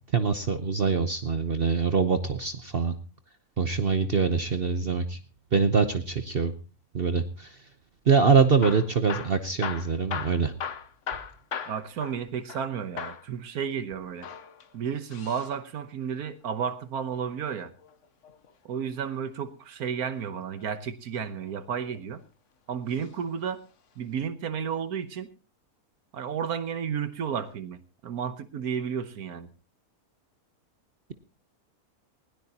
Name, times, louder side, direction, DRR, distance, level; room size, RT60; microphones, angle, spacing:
voice 1, 0.1-2.9 3.6-5.2 5.5-6.5 6.9-7.6 8.1-10.5, right 5 dB, 45° right, 9 dB, 1.0 m, -24 dB
Hammer / Drill, 8.5-12.7 13.0-13.3 14.1-15.5 17.3-18.5 20.2-20.7 21.4-22.2 22.9-23.2 23.5-23.6 24.2-24.3, left 7 dB, 55° left, 1.3 m, -38 dB
voice 2, 11.7-14.3 14.7-17.7 18.6-22.2 22.7-23.6 24.0-25.3 26.1-29.5, right 7 dB, 75° right, 11 dB, 1.5 m, -32 dB
20.0 x 17.0 x 2.9 m, 0.33 s
omnidirectional pair, 1.6 m